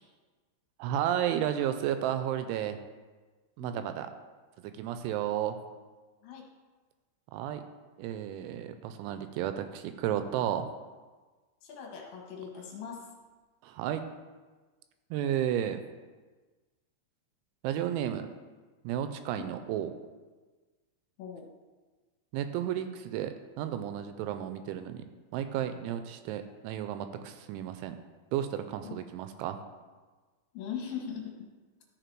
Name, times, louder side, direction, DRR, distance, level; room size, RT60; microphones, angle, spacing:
voice 1, 0.8-2.8 3.6-4.1 4.6-5.6 7.3-7.6 8.0-10.7 13.6-14.0 15.1-15.8 17.6-18.3 18.8-19.9 22.3-25.0 25.3-28.0 28.3-29.6, right 10 dB, 85° right, 9 dB, 2.9 m, -32 dB
voice 2, 11.6-13.0 19.3-19.4 21.2-21.5 28.8-29.0 30.5-31.3, left 7 dB, 70° left, 0 dB, 2.6 m, -40 dB
13.0 x 4.7 x 4.6 m, 1.3 s
omnidirectional pair, 5.5 m